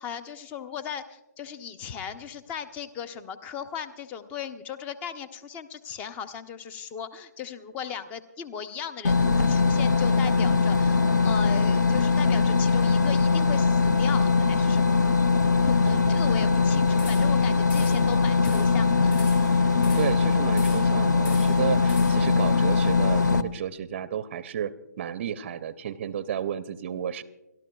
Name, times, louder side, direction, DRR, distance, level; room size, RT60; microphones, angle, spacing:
voice 1, 0.0-15.3 15.6-19.1, left 8 dB, 15° left, 13 dB, 0.6 m, -37 dB
sound 1, 9.0-23.4, left 4 dB, 80° left, 0.7 m, -21 dB
voice 2, 15.9-16.2 19.9-27.2, right 9 dB, 40° right, 14 dB, 0.5 m, -32 dB
sound 2, 17.0-17.4 17.7-18.1 18.4-18.8 19.1-20.2 20.6-21.0 21.2-22.3, left 4 dB, 40° left, 6.1 m, -42 dB
28.5 x 12.5 x 2.3 m, 0.99 s
figure-of-eight pair, 140°, 10 cm